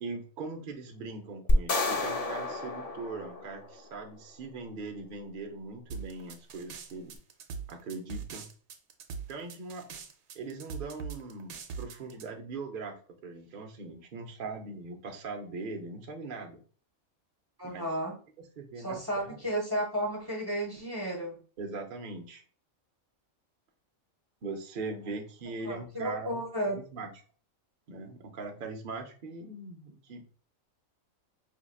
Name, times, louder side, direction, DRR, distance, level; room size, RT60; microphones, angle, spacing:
voice 1, 0.0-7.1 7.7-8.5 9.3-9.9 10.3-13.0 13.2-16.6 17.6-17.8 18.4-19.4 21.6-22.4 24.4-27.1 27.9-30.2, right 3 dB, 45° right, 3 dB, 0.7 m, -40 dB
sound 1, 1.5-3.9, left 2 dB, 70° left, 0.3 m, -31 dB
sound 2, 5.9-12.3, right 6 dB, 80° right, 1.1 m, -41 dB
voice 2, 17.6-18.1 18.8-21.4 25.6-26.8, right 1 dB, 15° right, -2 dB, 1.1 m, -33 dB
5.8 x 2.8 x 2.3 m, 0.40 s
omnidirectional pair, 1.5 m